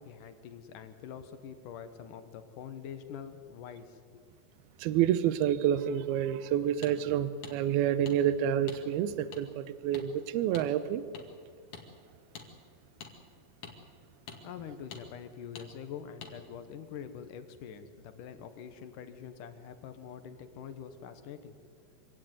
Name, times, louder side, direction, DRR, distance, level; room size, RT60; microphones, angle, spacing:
voice 1, 0.0-4.2 14.4-21.6, left 8 dB, 65° left, 2.2 m, -45 dB
voice 2, 4.8-11.0, right 10 dB, 75° right, 2.6 m, -28 dB
sound 1, 6.8-6.9 7.4-7.6 8.1-8.2 8.7-8.8 9.3-9.4 9.9-10.1 10.5-10.7 11.1-11.2 11.7-11.9 12.3-12.5 13.0-13.1 13.6-13.8 14.3-14.4 14.9-15.0 15.6-15.7 16.2-16.3, left 7 dB, 50° left, 2.9 m, -45 dB
25.0 x 16.5 x 9.6 m
omnidirectional pair, 5.0 m